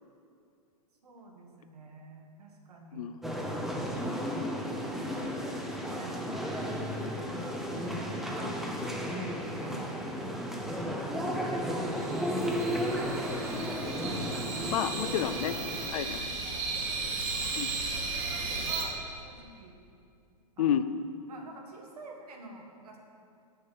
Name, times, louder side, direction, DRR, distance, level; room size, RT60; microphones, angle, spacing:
voice 1, 1.0-3.1 3.8-4.4 5.1-5.4 5.7-6.9 7.8-8.6 9.6-10.0 10.8-14.8 16.4-17.6 17.9-19.0 19.2-19.8 20.6-20.8 21.3-23.0, right 3 dB, 75° right, 0 dB, 1.7 m, -48 dB
voice 2, 2.9-3.3 8.4-8.5 14.7-15.6 15.9-16.3 17.6-17.7 20.6-20.9, left 9 dB, 65° left, 12 dB, 0.5 m, -30 dB
sound 1, 3.2-15.9, equal, ahead, 0.7 m, -34 dB
sound 2, 11.9-18.8, right 4 dB, 55° right, 1.8 m, -35 dB
7.5 x 6.6 x 5.8 m, 2.5 s
hypercardioid pair, 130°, 20 cm